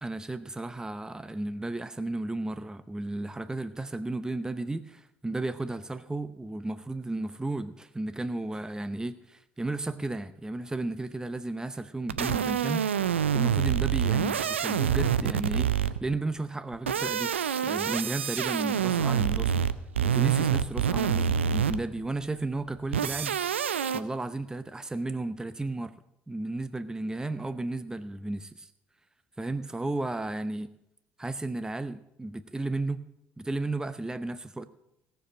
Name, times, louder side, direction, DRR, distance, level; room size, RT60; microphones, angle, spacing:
voice 1, 0.0-15.7 16.0-17.3 17.6-19.6 20.0-23.6 23.9-25.9 26.3-28.7 29.4-30.7 31.2-33.0 33.4-34.7, right 2 dB, 10° right, 12 dB, 0.7 m, -33 dB
sound 1, 12.1-16.1 16.7-22.0 22.9-24.0, right 8 dB, 85° right, 0.5 m, -27 dB
17.5 x 6.9 x 7.4 m, 0.84 s
figure-of-eight pair, 50°, 6 cm